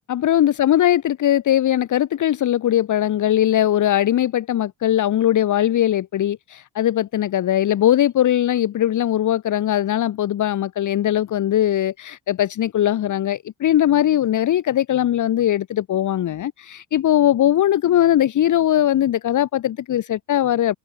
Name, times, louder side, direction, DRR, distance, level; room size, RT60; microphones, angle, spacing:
voice 1, 0.1-20.8, left 11 dB, 50° left, 1.4 m, -20 dB
cardioid pair, 100°, 38 cm